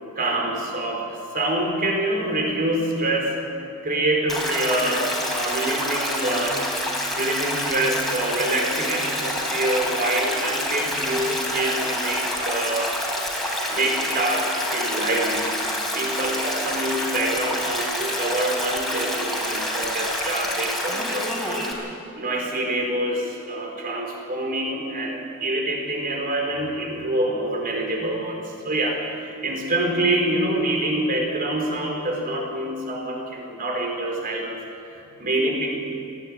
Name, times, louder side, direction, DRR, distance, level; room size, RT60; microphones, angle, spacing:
voice 1, 0.2-3.4 3.8-6.6 7.1-12.9 13.7-15.5 15.9-21.7 22.1-34.6 34.8-35.7, right 1 dB, 40° right, 1 dB, 4.2 m, -26 dB
Stream, 4.3-21.7, left 1 dB, ahead, 3.8 m, -27 dB
20.5 x 15.5 x 8.8 m, 2.8 s
head